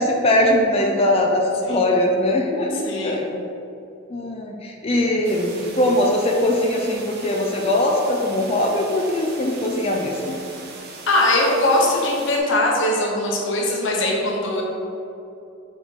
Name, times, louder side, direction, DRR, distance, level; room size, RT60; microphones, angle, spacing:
voice 1, 0.0-3.2 4.1-10.4, left 1 dB, 30° left, 0 dB, 0.5 m, -21 dB
voice 2, 2.8-3.2 11.1-14.6, left 1 dB, 65° left, -2 dB, 1.1 m, -21 dB
sound 1, 5.2-12.4, right 3 dB, 50° right, 0.8 m, -40 dB
5.2 x 4.2 x 4.6 m, 2.7 s
head